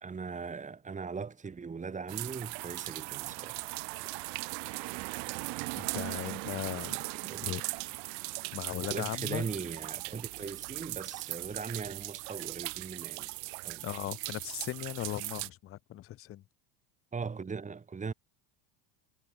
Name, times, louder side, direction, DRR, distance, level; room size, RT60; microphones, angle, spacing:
voice 1, 0.0-3.6 7.2-7.6 8.9-13.3 13.6-13.9 17.1-18.1, right 5 dB, 15° right, 1.5 m, -39 dB
sound 1, 2.1-15.5, right 39 dB, 80° right, 0.9 m, -39 dB
voice 2, 5.7-7.0 7.4-8.2 8.5-9.4 13.8-16.4, left 14 dB, 30° left, 0.5 m, -38 dB
cardioid pair, 130°, 48 cm